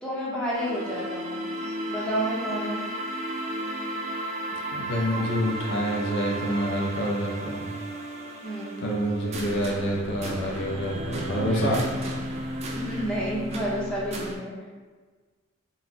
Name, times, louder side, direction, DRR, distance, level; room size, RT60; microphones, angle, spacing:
voice 1, 0.0-1.4 1.9-2.9 8.4-8.8 11.5-11.9 12.7-14.6, equal, 5° left, -7 dB, 0.6 m, -30 dB
sound 1, 0.5-14.4, right 1 dB, 30° right, 0.3 m, -34 dB
voice 2, 4.7-7.7 8.8-11.8, equal, 60° left, -2 dB, 0.5 m, -27 dB
3.8 x 2.0 x 2.7 m, 1.4 s
head